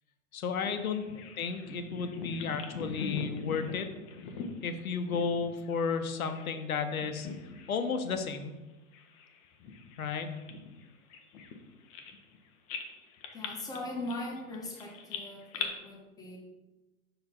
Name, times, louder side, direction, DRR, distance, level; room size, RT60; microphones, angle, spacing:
voice 1, 0.3-1.0 1.4-3.9 4.6-7.3 7.7-8.5 10.0-10.3, left 5 dB, 70° left, 8 dB, 0.9 m, -33 dB
Bird vocalization bird call bird song, 0.7-6.6 6.9-7.8 8.1-8.3 8.9-12.4 12.7-15.7, left 5 dB, 25° left, 0.5 m, -42 dB
voice 2, 13.3-16.4, left 2 dB, 10° left, -1 dB, 0.9 m, -40 dB
5.6 x 3.9 x 4.4 m, 1.1 s
figure-of-eight pair, 110°, 44 cm